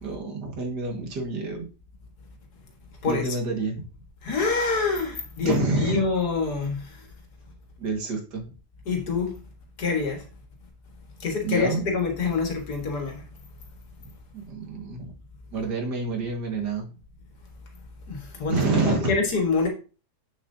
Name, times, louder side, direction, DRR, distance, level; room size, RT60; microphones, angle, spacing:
voice 1, 0.0-1.7 3.0-3.8 5.4-6.0 7.8-8.5 11.4-11.9 14.3-15.1 15.5-16.9 18.5-19.1, right 3 dB, 85° right, 2.3 m, -28 dB
voice 2, 4.2-7.0 8.9-9.3 9.8-10.3 11.2-13.2 18.1-19.7, left 4 dB, 70° left, 2.1 m, -26 dB
7.6 x 7.0 x 2.7 m
omnidirectional pair, 1.8 m